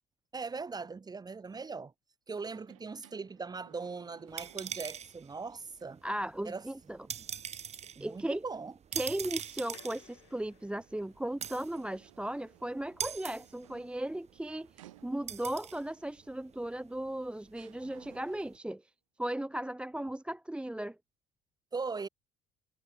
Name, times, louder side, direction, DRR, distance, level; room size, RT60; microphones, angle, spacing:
voice 1, 0.3-1.9 2.3-6.0 6.4-6.7 7.0-7.2 7.9-8.7 21.7-22.1, right 4 dB, 25° right, 2.5 m, -40 dB
sound 1, 2.4-5.4 5.8-5.9 11.3-15.6 16.7-16.8 17.5-18.7, right 15 dB, 90° right, 1.9 m, -60 dB
sound 2, 4.3-18.6, right 8 dB, 45° right, 2.3 m, -44 dB
voice 2, 6.0-7.0 8.0-8.4 8.9-18.9 19.2-21.0, right 1 dB, 5° right, 0.9 m, -36 dB
sound 3, 9.5-16.1, left 20 dB, 85° left, 2.9 m, -63 dB
hypercardioid pair, 70°, 16 cm